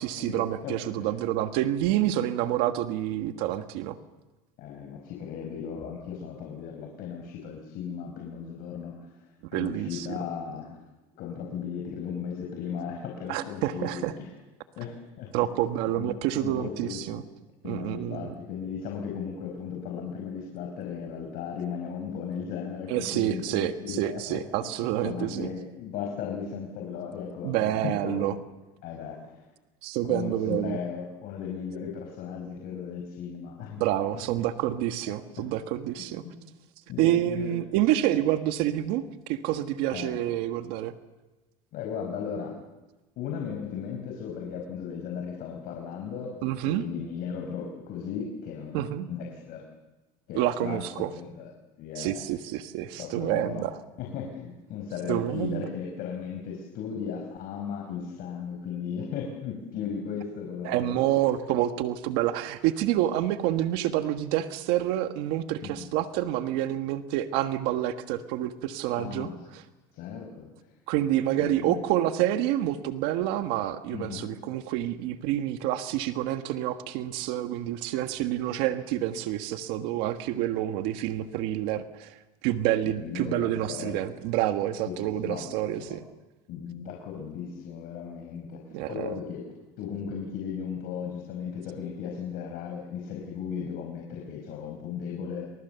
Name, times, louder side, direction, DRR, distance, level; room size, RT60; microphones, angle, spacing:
voice 1, 0.0-4.0 9.5-10.1 13.3-14.1 15.3-17.2 17.6-18.3 22.9-25.5 27.4-28.3 29.8-30.8 33.8-36.2 37.0-40.9 46.4-46.8 48.7-49.1 50.3-51.1 51.9-53.8 55.1-55.7 60.6-69.6 70.9-82.2 82.4-86.1 88.7-89.1, right 13 dB, 75° right, 8 dB, 1.5 m, -28 dB
voice 2, 0.6-1.1 4.6-9.2 9.5-10.8 11.2-14.3 14.8-15.5 15.9-17.2 17.6-28.4 28.8-29.4 30.0-33.8 34.1-34.2 35.1-35.5 36.2-36.4 36.9-37.6 39.9-40.2 41.7-42.6 43.2-46.4 46.6-49.6 50.3-51.5 51.8-52.2 53.0-53.7 54.0-61.0 65.6-65.9 69.0-69.4 69.9-70.5 71.4-71.8 73.9-74.3 77.8-77.9 82.8-84.0 84.9-85.5 85.8-86.0 86.5-89.4 89.8-95.5, left 7 dB, 60° left, 1 dB, 5.0 m, -36 dB
29.0 x 26.0 x 7.0 m, 1.1 s
cardioid pair, 130°, 17 cm